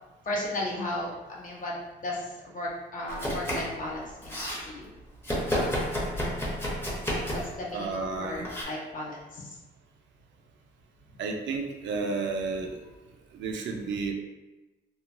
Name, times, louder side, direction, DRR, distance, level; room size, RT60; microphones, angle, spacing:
voice 1, 0.2-1.7 2.0-4.9 5.6-6.1 7.3-9.6, left 1 dB, 40° left, -3 dB, 0.8 m, -35 dB
Domestic sounds home sounds, 3.1-3.8 4.0-4.6 5.2-7.6 8.4-8.6, equal, 10° left, 0.8 m, -30 dB
voice 2, 7.7-8.5 11.2-12.7 13.3-14.1, right 4 dB, 70° right, 3 dB, 0.5 m, -31 dB
3.0 x 2.1 x 2.5 m, 1.1 s
cardioid pair, 90°, 20 cm